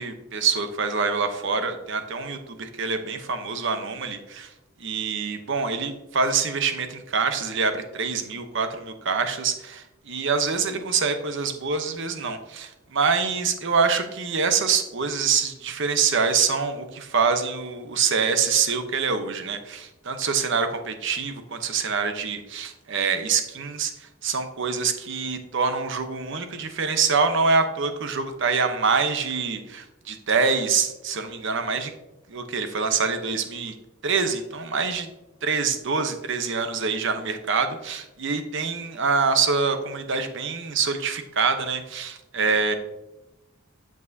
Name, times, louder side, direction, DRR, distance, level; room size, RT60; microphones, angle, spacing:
voice 1, 0.0-4.5 4.8-23.9 24.2-31.9 32.3-33.7 34.0-35.1 35.4-42.7, right 5 dB, 65° right, 8 dB, 0.9 m, -25 dB
8.3 x 7.2 x 2.7 m, 0.95 s
head